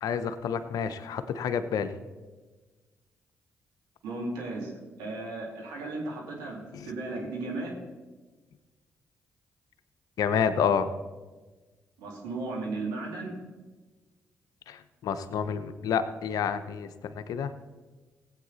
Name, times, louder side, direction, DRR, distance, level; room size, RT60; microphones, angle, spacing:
voice 1, 0.0-1.9 6.7-6.9 10.2-10.9 14.7-17.5, left 7 dB, 70° left, 11 dB, 0.8 m, -29 dB
voice 2, 4.0-4.7 5.0-7.8 12.0-13.4, right 2 dB, 80° right, -2 dB, 2.9 m, -35 dB
17.5 x 8.3 x 4.1 m, 1.3 s
hypercardioid pair, 45°, 6 cm